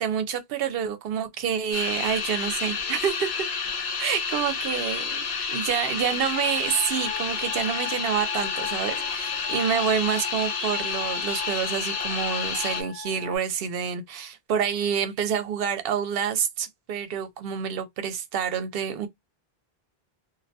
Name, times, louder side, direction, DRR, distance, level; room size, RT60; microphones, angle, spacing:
voice 1, 0.0-3.5 4.0-19.1, right 8 dB, 70° right, 0.7 m, -28 dB
sound 1, 1.7-12.8, left 5 dB, 85° left, 0.9 m, -30 dB
sound 2, 6.3-13.4, left 9 dB, 35° left, 0.5 m, -38 dB
2.3 x 2.1 x 2.6 m
omnidirectional pair, 1.0 m